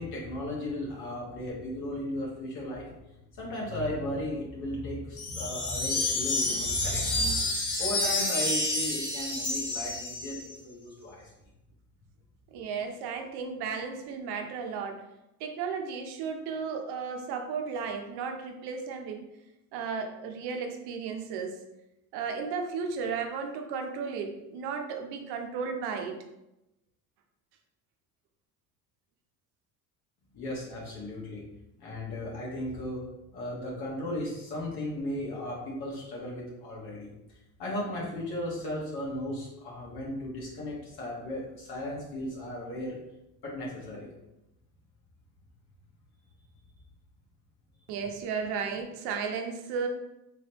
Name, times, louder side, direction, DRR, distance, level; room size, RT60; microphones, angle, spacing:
voice 1, 0.0-2.9 3.3-11.2 30.3-31.4 31.8-33.0 33.3-43.0 43.4-44.1, left 1 dB, 70° left, -5 dB, 1.4 m, -36 dB
sound 1, 5.2-10.5, left 2 dB, 85° left, 1.2 m, -29 dB
voice 2, 12.5-15.0 15.4-19.3 19.7-21.6 22.1-26.2 47.9-49.9, right 5 dB, 75° right, 4 dB, 0.8 m, -34 dB
3.7 x 3.2 x 3.0 m, 0.91 s
supercardioid pair, 85°, 39 cm